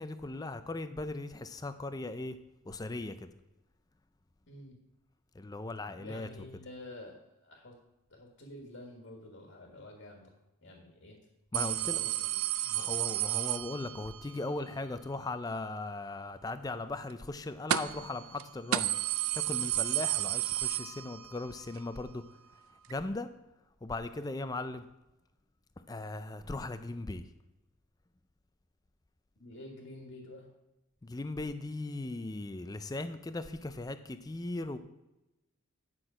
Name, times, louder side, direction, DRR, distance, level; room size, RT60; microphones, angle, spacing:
voice 1, 0.0-2.4 2.7-3.3 5.4-6.3 11.5-12.0 12.7-18.9 19.3-22.2 22.9-23.3 23.8-24.8 25.9-27.3 31.0-34.8, left 2 dB, 15° left, 11 dB, 0.4 m, -38 dB
voice 2, 4.5-4.8 5.9-7.7 8.1-10.3 10.6-11.2 11.6-13.0 29.4-30.5, left 1 dB, 60° left, 1 dB, 1.6 m, -49 dB
sound 1, 11.5-14.2 17.7-18.1 18.4-18.5 18.7-21.5 21.8-21.9 22.9-23.0, right 13 dB, 75° right, 0.4 m, -32 dB
10.0 x 6.1 x 4.8 m, 0.97 s
head